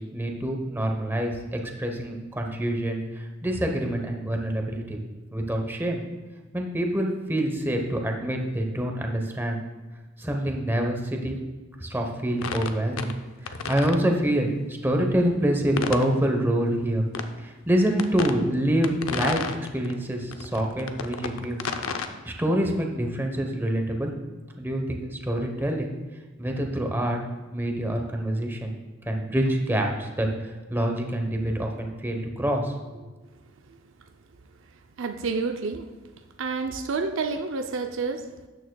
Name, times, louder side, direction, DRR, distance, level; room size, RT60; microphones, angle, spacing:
voice 1, 0.0-5.0 5.3-6.0 6.5-9.6 10.2-11.4 11.8-13.2 13.4-17.1 17.4-19.4 19.7-21.6 22.2-24.1 24.6-25.9 26.4-27.2 27.5-28.7 29.1-30.3 30.7-32.7, right 1 dB, 10° right, 2 dB, 0.9 m, -26 dB
sound 1, 12.4-13.2 13.5-14.0 15.8-16.1 17.2-17.3 18.0-18.4 18.8-20.0 20.3-22.1, left 5 dB, 80° left, 0.6 m, -31 dB
voice 2, 35.0-35.9 36.4-38.5, right 4 dB, 65° right, 6 dB, 0.5 m, -29 dB
12.5 x 9.1 x 2.3 m, 1.2 s
head